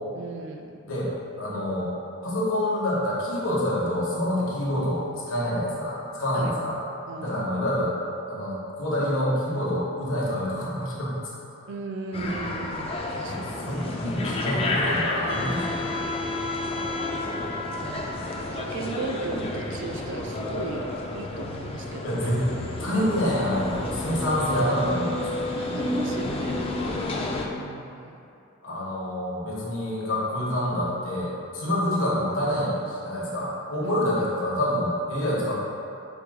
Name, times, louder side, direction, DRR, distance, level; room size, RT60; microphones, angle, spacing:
voice 1, 0.2-0.7 6.3-6.5 7.1-7.4 11.7-13.9 16.4-16.7 17.8-18.2 18.5-22.3 25.6-26.6 27.5-28.1 31.7-31.9 33.8-34.0, right 3 dB, 60° right, 3 dB, 0.4 m, -36 dB
voice 2, 1.4-1.9 2.2-6.8 7.2-7.9 8.3-11.1 13.3-16.0 18.0-18.2 22.0-22.5 22.8-25.5 26.8-27.0 28.6-35.5, left 1 dB, 75° left, -6 dB, 1.2 m, -27 dB
sound 1, 12.1-27.5, left 2 dB, 30° left, 0.4 m, -30 dB
4.8 x 2.3 x 4.9 m, 2.6 s
head